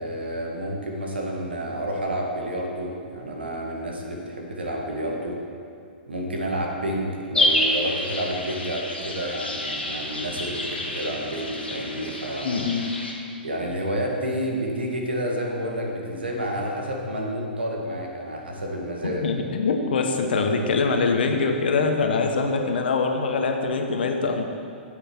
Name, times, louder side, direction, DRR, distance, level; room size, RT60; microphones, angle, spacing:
voice 1, 0.0-5.4 6.1-12.6 13.4-19.3 20.4-20.5, right 1 dB, 85° right, 0 dB, 1.8 m, -29 dB
sound 1, 7.3-13.1, left 1 dB, 90° left, 1.4 m, -28 dB
voice 2, 12.4-12.9 19.0-24.4, left 4 dB, 70° left, 4 dB, 1.1 m, -23 dB
10.0 x 7.9 x 4.6 m, 2.4 s
figure-of-eight pair, 110°, 5 cm